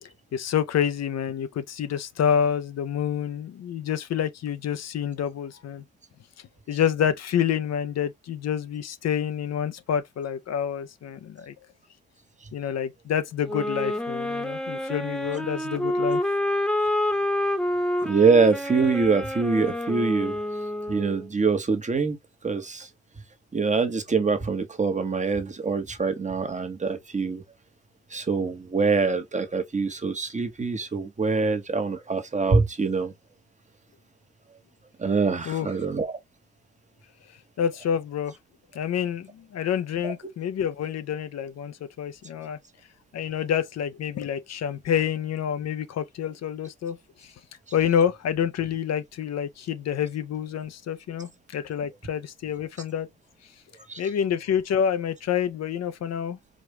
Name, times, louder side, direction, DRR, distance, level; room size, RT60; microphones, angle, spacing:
voice 1, 0.0-5.8 6.7-11.5 12.5-16.2 35.5-35.7 37.6-38.3 38.7-42.6 43.1-47.3 47.7-53.1 54.0-56.4, left 8 dB, 60° left, 0.7 m, -28 dB
sound 1, 13.4-21.3, left 1 dB, ahead, 1.1 m, -28 dB
voice 2, 18.0-20.4 20.9-22.2 22.4-22.9 23.5-27.4 28.1-33.1 35.0-36.2 40.0-40.1 53.9-54.1, right 4 dB, 25° right, 1.1 m, -24 dB
5.0 x 2.4 x 3.2 m
cardioid pair, 90°, 30 cm